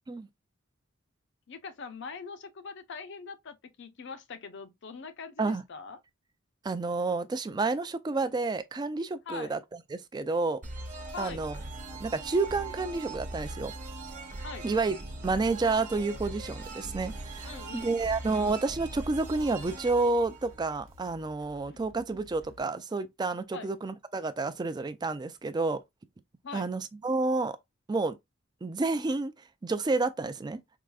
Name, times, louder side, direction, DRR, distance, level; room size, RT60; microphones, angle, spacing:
voice 1, 1.5-6.0 9.3-9.5 11.1-11.4 14.4-14.7 17.4-18.1 21.7-21.8 23.5-23.7 26.4-26.7, left 5 dB, 60° left, 0.6 m, -42 dB
voice 2, 6.6-9.6 9.9-10.6 11.2-11.6 12.0-13.7 14.6-15.0 15.2-25.8 26.5-27.6 27.9-28.2 28.6-29.3 29.6-30.6, right 3 dB, 20° right, 0.3 m, -30 dB
sound 1, 10.6-21.2, right 2 dB, 40° right, 1.0 m, -41 dB
sound 2, 11.6-22.6, left 1 dB, 75° right, 0.8 m, -55 dB
4.7 x 2.4 x 2.3 m
head